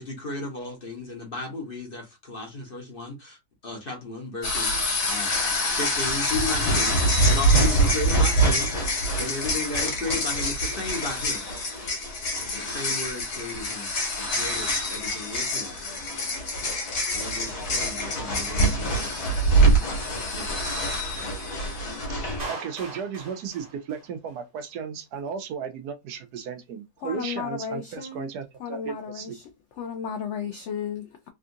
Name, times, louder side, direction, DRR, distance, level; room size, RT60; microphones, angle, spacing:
voice 1, 0.0-3.4 3.6-4.8 5.1-8.7 9.2-11.4 12.5-13.9 14.2-15.8 17.1-19.2 19.4-20.0 20.3-20.6, left 2 dB, 40° left, 1.0 m, -35 dB
sound 1, 4.4-22.5, right 1 dB, 70° left, 1.7 m, -25 dB
voice 2, 8.4-9.5 27.0-28.3 28.6-29.5 29.8-31.3, left 7 dB, 85° left, 0.6 m, -35 dB
Clapping, 22.4-24.4, right 2 dB, 40° right, 0.6 m, -39 dB
voice 3, 22.5-29.3, right 7 dB, 75° right, 1.1 m, -35 dB
3.6 x 2.4 x 2.6 m
omnidirectional pair, 1.8 m